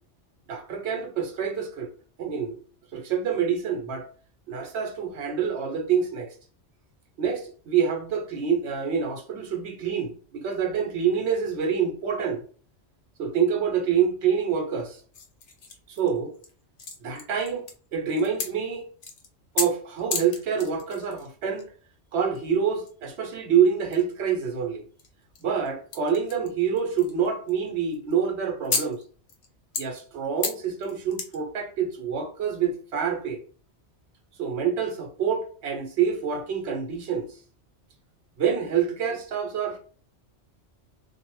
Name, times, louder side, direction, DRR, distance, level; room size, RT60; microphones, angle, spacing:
voice 1, 0.5-1.9 2.2-2.6 2.9-4.1 4.5-6.3 7.2-12.4 13.2-15.0 15.9-16.3 17.0-17.6 17.9-18.8 19.5-21.7 22.1-24.8 25.4-29.0 29.8-33.4 34.4-37.3 38.4-39.8, right 7 dB, 70° right, 0.9 m, -26 dB
sound 1, 15.1-16.5 16.8-17.9 18.1-18.5 19.0-19.3 19.5-19.7 20.0-21.3 21.6-21.7 22.4-22.5 22.7-23.3 23.8-24.0 25.0-26.5 26.8-27.7 27.9-28.1 28.6-29.0 29.3-29.5 29.7-31.4 31.9-32.0, left 4 dB, 55° left, 0.7 m, -32 dB
2.3 x 2.0 x 3.0 m
omnidirectional pair, 1.2 m